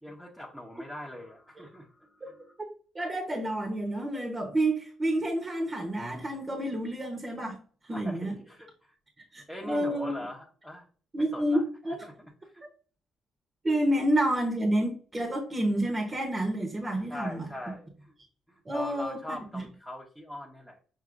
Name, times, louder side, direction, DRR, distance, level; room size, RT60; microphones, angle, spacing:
voice 1, 0.0-2.6 7.9-9.0 9.5-10.9 11.2-11.6 12.0-12.1 12.4-12.6 17.1-18.1 18.5-20.8, left 1 dB, ahead, 0.8 m, -42 dB
voice 2, 2.6-7.6 7.9-8.4 9.3-10.1 11.1-12.0 13.6-17.5 18.7-19.2 19.5-19.6, right 1 dB, 25° right, 0.9 m, -29 dB
6.0 x 2.7 x 2.5 m
cardioid pair, 90°, 0 cm